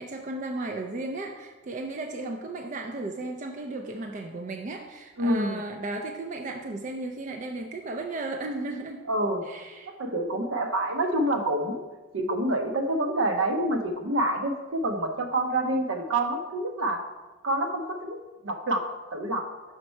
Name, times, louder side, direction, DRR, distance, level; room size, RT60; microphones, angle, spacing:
voice 1, 0.0-9.0 9.4-9.9, right 2 dB, 35° right, 3 dB, 0.4 m, -35 dB
voice 2, 5.2-5.6 9.1-9.5 9.9-11.8 12.1-17.0 17.4-18.2 18.4-18.9 19.1-19.5, right 1 dB, 70° right, 5 dB, 0.7 m, -27 dB
5.8 x 5.3 x 4.4 m, 1.2 s
head